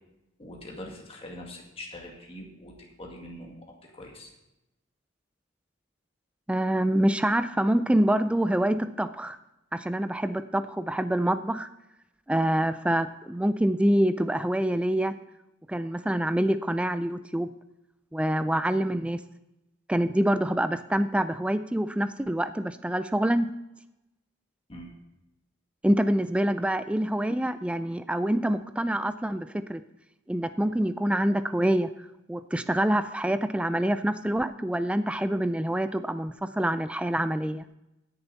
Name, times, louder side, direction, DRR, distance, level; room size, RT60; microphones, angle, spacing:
voice 1, 0.4-3.7 3.9-4.3 24.7-24.9, left 1 dB, 30° left, 0 dB, 2.0 m, -43 dB
voice 2, 6.5-9.4 9.7-11.7 12.3-15.1 15.7-17.5 18.1-19.2 19.9-23.5 25.8-29.8 30.3-31.9 32.3-37.6, right 1 dB, 5° right, 12 dB, 0.3 m, -26 dB
17.5 x 6.9 x 4.1 m, 0.91 s
head